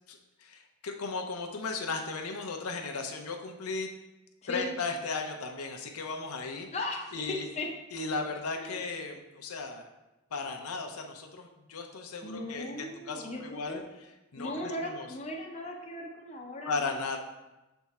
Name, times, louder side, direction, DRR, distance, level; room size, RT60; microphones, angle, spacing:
voice 1, 0.1-3.9 4.5-6.7 7.1-7.5 7.9-9.9 10.3-15.1 16.6-17.2, left 4 dB, 85° left, 3 dB, 0.7 m, -36 dB
voice 2, 4.4-4.7 6.7-7.7 8.6-8.8 12.2-13.8 14.4-17.0, left 1 dB, 30° left, 0 dB, 0.6 m, -37 dB
6.8 x 3.5 x 4.1 m, 1.0 s
head